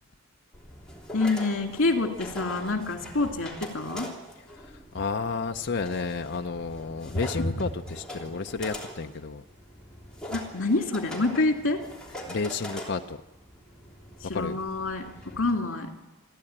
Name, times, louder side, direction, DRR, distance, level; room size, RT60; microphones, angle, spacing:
sound 1, 0.5-15.5, left 1 dB, 5° left, 3.2 m, -42 dB
voice 1, 1.1-4.1 7.4-7.5 10.3-11.8 14.2-15.9, left 2 dB, 75° left, 3 dB, 2.4 m, -27 dB
voice 2, 4.6-9.4 12.3-13.2 14.3-14.6, left 4 dB, 55° left, 5 dB, 0.6 m, -31 dB
27.5 x 11.0 x 8.8 m, 1.1 s
head